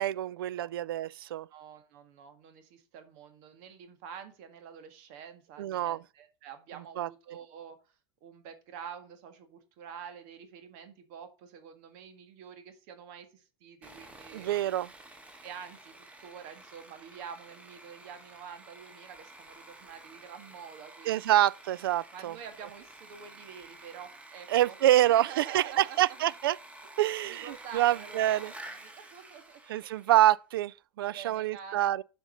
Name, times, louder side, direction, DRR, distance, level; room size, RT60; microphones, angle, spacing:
voice 1, 0.0-1.5 5.6-6.0 7.0-7.1 14.3-14.9 21.1-22.3 24.5-26.6 27.0-28.5 29.7-32.0, right 13 dB, 85° right, 0.4 m, -26 dB
voice 2, 1.5-14.8 15.4-21.4 22.1-26.2 27.3-28.4 28.7-29.6 30.9-31.9, right 7 dB, 60° right, 1.9 m, -47 dB
Sawing, 13.8-30.2, right 2 dB, 10° right, 1.6 m, -51 dB
7.3 x 5.3 x 6.6 m
hypercardioid pair, 105°, 12 cm